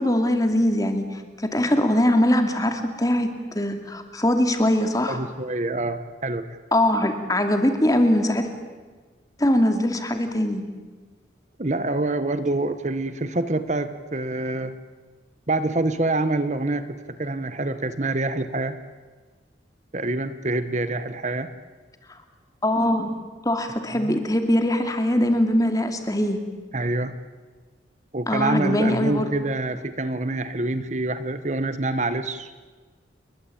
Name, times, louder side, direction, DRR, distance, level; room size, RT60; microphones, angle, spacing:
voice 1, 0.0-3.3 3.5-5.2 6.7-8.5 9.4-10.6 22.6-23.1 23.4-26.4 28.3-29.3, left 1 dB, 20° left, 6 dB, 2.6 m, -22 dB
voice 2, 5.1-6.6 11.6-14.7 15.5-16.8 17.2-18.8 19.9-21.5 24.0-24.2 26.7-27.2 28.1-32.5, right 2 dB, 40° right, 11 dB, 1.2 m, -26 dB
29.0 x 22.5 x 8.7 m, 1.4 s
head